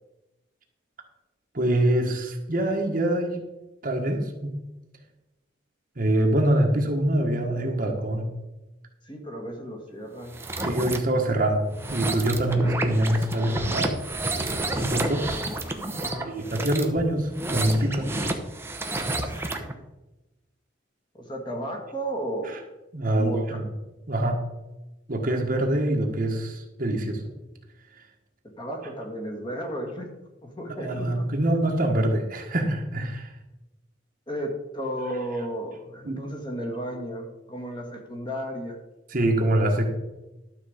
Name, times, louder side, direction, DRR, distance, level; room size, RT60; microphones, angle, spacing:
voice 1, 1.5-3.4 3.8-4.6 6.0-8.3 10.6-13.9 14.7-15.3 16.4-18.1 22.4-22.6 22.9-23.7 24.1-24.4 25.1-27.2 30.8-33.3 36.0-36.2 39.1-39.8, right 1 dB, 45° right, 1 dB, 1.4 m, -24 dB
voice 2, 9.0-10.5 16.0-16.4 19.2-19.6 21.1-22.7 23.2-23.6 28.6-31.3 34.3-38.8, equal, 25° left, 2 dB, 1.8 m, -34 dB
sound 1, 10.2-11.0 11.7-19.7, right 2 dB, 10° right, 1.0 m, -30 dB
12.5 x 6.9 x 5.1 m, 1.0 s
head